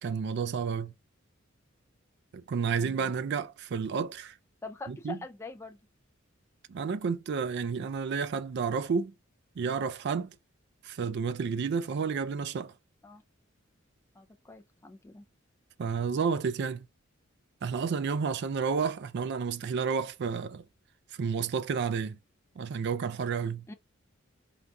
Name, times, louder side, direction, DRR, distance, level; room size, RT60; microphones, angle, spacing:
voice 1, 0.0-0.9 2.3-4.4 4.9-5.2 6.7-9.1 9.6-10.3 10.8-12.7 15.8-16.9 17.6-20.6 21.2-22.2 22.6-23.7, right 5 dB, 55° right, 0.4 m, -31 dB
voice 2, 2.8-3.1 4.6-5.8 13.0-13.2 14.2-15.2 23.7-23.8, left 3 dB, 15° left, 0.4 m, -44 dB
3.8 x 2.3 x 4.6 m
head